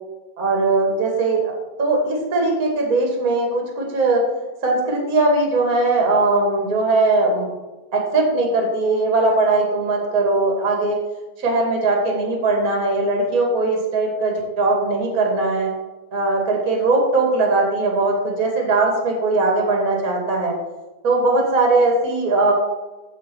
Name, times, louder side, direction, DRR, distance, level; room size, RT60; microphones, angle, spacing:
voice 1, 0.4-4.2 4.6-7.5 7.9-11.0 11.4-15.7 16.1-20.5 21.0-22.5, right 2 dB, 25° right, 0 dB, 2.4 m, -19 dB
15.0 x 5.5 x 4.7 m, 1.1 s
omnidirectional pair, 3.9 m